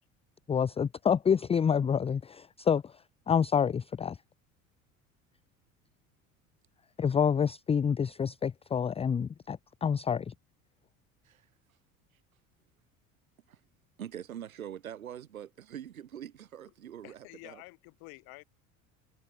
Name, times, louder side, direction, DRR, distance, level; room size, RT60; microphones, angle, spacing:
voice 1, 0.5-2.9 3.3-4.2 7.0-10.3, left 7 dB, 15° left, 0.5 m, -28 dB
voice 2, 14.0-17.6, right 10 dB, 80° right, 5.4 m, -44 dB
voice 3, 17.0-18.4, left 30 dB, 60° left, 5.0 m, -49 dB
figure-of-eight pair, 65°, 41 cm